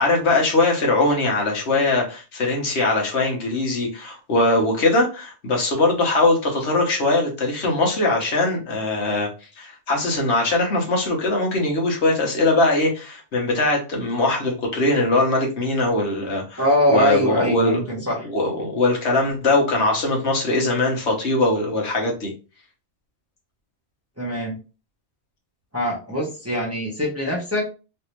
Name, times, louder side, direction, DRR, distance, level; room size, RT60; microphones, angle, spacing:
voice 1, 0.0-9.3 9.6-16.6 16.9-17.8 18.3-22.3, left 2 dB, 70° left, 0 dB, 1.3 m, -21 dB
voice 2, 16.6-18.2 24.2-24.6 25.7-27.7, equal, 15° right, -4 dB, 0.9 m, -22 dB
3.2 x 2.7 x 2.9 m, 0.32 s
omnidirectional pair, 1.2 m